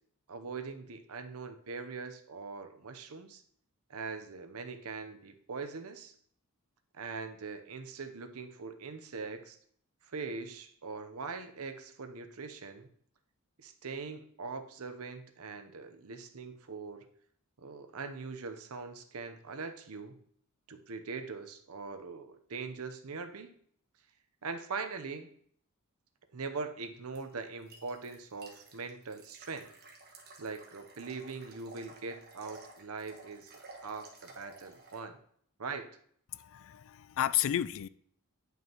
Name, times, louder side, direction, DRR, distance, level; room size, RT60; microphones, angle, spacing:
voice 1, 0.3-3.4 3.9-6.1 6.9-9.6 10.0-12.9 13.6-17.1 17.6-20.2 20.7-23.5 24.4-25.3 26.3-29.7 30.4-35.2 35.6-35.9, right 4 dB, 70° right, 8 dB, 0.8 m, -42 dB
sound 1, 27.2-35.0, right 2 dB, 45° right, 1.3 m, -53 dB
voice 2, 36.3-37.9, left 11 dB, 65° left, 17 dB, 0.3 m, -32 dB
9.3 x 5.7 x 2.9 m, 0.62 s
head